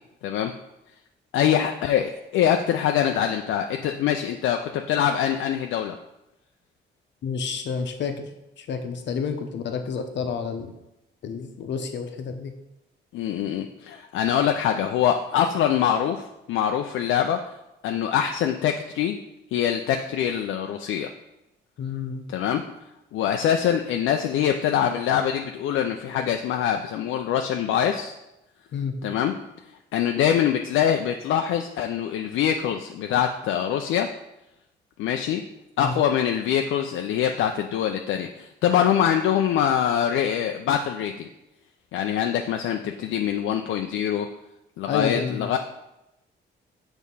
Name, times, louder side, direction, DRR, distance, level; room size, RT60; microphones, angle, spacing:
voice 1, 0.2-0.5 1.3-6.0 13.1-17.4 17.8-19.2 19.5-21.1 22.3-22.6 23.1-28.1 29.0-29.3 29.9-34.1 35.0-35.4 35.8-41.3 41.9-44.3 44.8-45.6, left 9 dB, 80° left, 4 dB, 0.5 m, -24 dB
voice 2, 7.2-8.3 8.6-10.7 11.2-12.5 21.8-22.3 28.7-29.0 35.8-35.9 44.9-45.5, left 6 dB, 65° left, 6 dB, 0.8 m, -29 dB
6.5 x 3.5 x 5.4 m, 0.91 s
cardioid pair, 90°, 20 cm